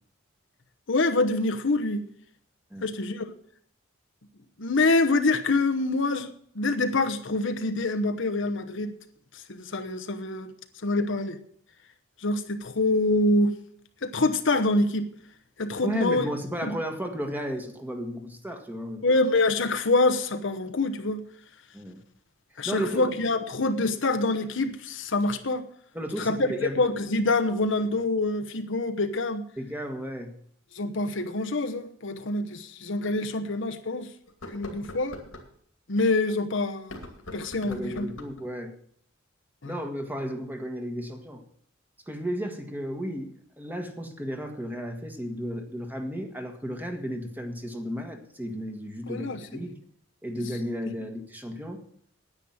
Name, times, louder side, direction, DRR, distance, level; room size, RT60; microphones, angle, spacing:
voice 1, 0.9-2.1 2.8-3.3 4.6-6.3 6.5-8.9 9.3-10.5 10.8-11.4 12.2-13.6 14.0-15.1 15.6-16.2 16.6-16.8 19.0-21.2 22.6-25.7 26.2-26.5 26.8-29.4 30.7-34.1 34.4-35.2 35.9-36.9 37.3-38.1 39.6-39.7 49.1-49.4, left 2 dB, 65° left, 1.0 m, -26 dB
voice 2, 15.8-19.0 21.7-22.0 22.7-23.1 25.9-26.8 29.6-30.4 37.6-38.7 39.7-41.4 42.1-49.8 50.2-51.8, equal, 10° right, 1.6 m, -34 dB
sound 1, 32.3-32.4 33.0-33.1 34.3-35.5 36.8-38.5, left 1 dB, 85° left, 2.5 m, -43 dB
9.9 x 9.3 x 7.2 m
head